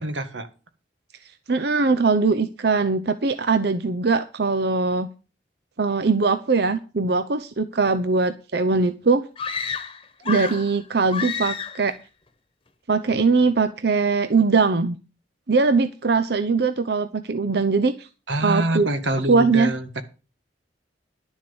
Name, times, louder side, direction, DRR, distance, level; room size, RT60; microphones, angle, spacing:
voice 1, 0.0-0.5 18.3-20.0, right 1 dB, 85° right, 1.7 m, -25 dB
voice 2, 1.5-5.1 5.8-9.2 10.3-11.9 12.9-15.0 15.5-18.1 18.4-18.9 19.3-19.7, right 4 dB, 60° right, 0.7 m, -21 dB
sound 1, 9.4-10.7 11.1-11.9, left 6 dB, 30° left, 1.2 m, -30 dB
11.5 x 7.3 x 7.0 m
head